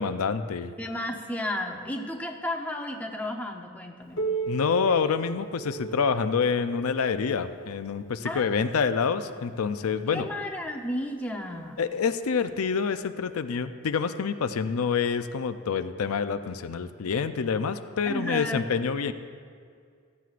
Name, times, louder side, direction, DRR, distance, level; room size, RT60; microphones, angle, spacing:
voice 1, 0.0-0.7 4.5-10.3 11.8-19.1, left 5 dB, 90° left, 10 dB, 0.5 m, -27 dB
voice 2, 0.8-4.2 8.2-8.6 10.1-11.8 18.1-18.7, left 1 dB, 5° left, 0 dB, 0.8 m, -33 dB
Piano, 4.2-9.5 10.3-10.4 10.9-11.0 11.8-11.9 12.9-13.0, right 3 dB, 60° left, 0.9 m, -37 dB
15.0 x 14.0 x 2.5 m, 2.1 s
head